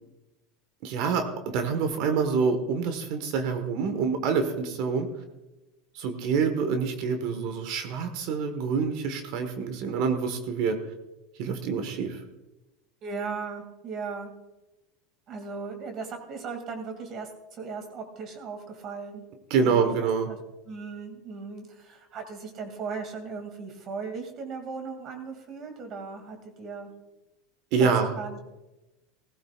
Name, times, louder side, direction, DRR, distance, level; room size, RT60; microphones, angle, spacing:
voice 1, 0.8-5.1 5.9-10.8 11.4-12.2 19.5-20.3 27.7-28.1, right 5 dB, 65° right, 7 dB, 1.5 m, -26 dB
voice 2, 13.0-14.3 15.3-19.2 19.6-19.9 20.3-20.4 20.7-26.9 27.8-28.4, right 5 dB, 45° right, 5 dB, 2.5 m, -37 dB
16.5 x 15.0 x 2.5 m, 1.0 s
supercardioid pair, 105°, 0 cm